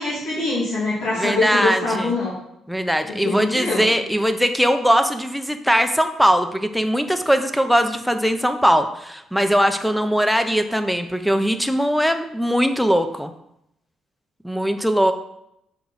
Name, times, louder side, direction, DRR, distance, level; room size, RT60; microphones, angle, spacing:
voice 1, 0.0-2.3 3.1-3.9, left 2 dB, 85° left, -9 dB, 2.3 m, -24 dB
voice 2, 1.1-2.1 2.7-13.3 14.4-15.1, equal, ahead, 8 dB, 0.6 m, -20 dB
6.5 x 4.6 x 4.1 m, 0.78 s
cardioid pair, 90°, 0 cm